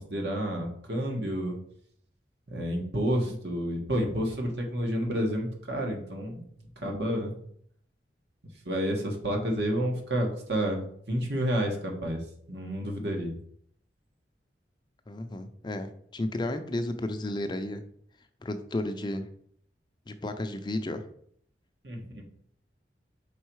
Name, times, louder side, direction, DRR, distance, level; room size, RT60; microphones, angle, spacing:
voice 1, 0.0-1.6 2.5-6.4 6.8-7.3 8.6-12.2 12.5-13.3 21.8-22.2, equal, 75° right, 1 dB, 1.5 m, -30 dB
voice 2, 15.1-17.8 18.4-19.3 20.1-21.0, left 1 dB, 25° left, 8 dB, 0.5 m, -33 dB
5.4 x 4.1 x 4.6 m, 0.64 s
head